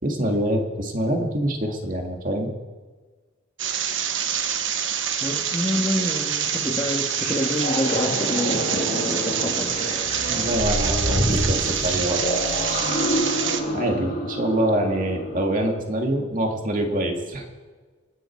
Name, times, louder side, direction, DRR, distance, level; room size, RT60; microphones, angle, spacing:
voice 1, 0.0-2.5 10.3-12.2 13.7-17.5, right 1 dB, 40° right, 2 dB, 2.3 m, -25 dB
sound 1, 3.6-13.6, right 8 dB, 65° right, 1.2 m, -26 dB
voice 2, 5.2-10.1, left 1 dB, 20° left, -4 dB, 1.7 m, -28 dB
Bubbly Planet Soundscape, 7.2-15.7, left 1 dB, 40° left, 2.0 m, -28 dB
sound 2, 8.0-9.6 10.1-11.7 12.2-14.2, right 1 dB, 80° right, 6.3 m, -33 dB
27.0 x 10.5 x 4.7 m, 1.4 s
head